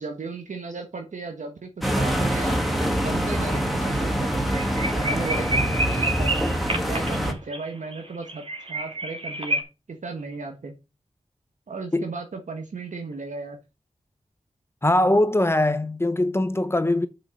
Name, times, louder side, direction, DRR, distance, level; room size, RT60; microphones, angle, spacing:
voice 1, 0.0-2.6 3.0-4.5 4.9-6.4 6.9-9.6 9.9-10.7 11.7-13.6, right 4 dB, 75° right, 1.5 m, -35 dB
sound 1, 1.8-7.3, equal, ahead, 2.0 m, -25 dB
sound 2, 2.8-3.2 3.4-3.5 3.9-4.0 4.3-9.6, right 1 dB, 50° right, 2.8 m, -29 dB
voice 2, 14.8-17.1, left 1 dB, 20° left, 0.8 m, -21 dB
6.5 x 5.7 x 6.5 m
wide cardioid pair, 80°, 13 cm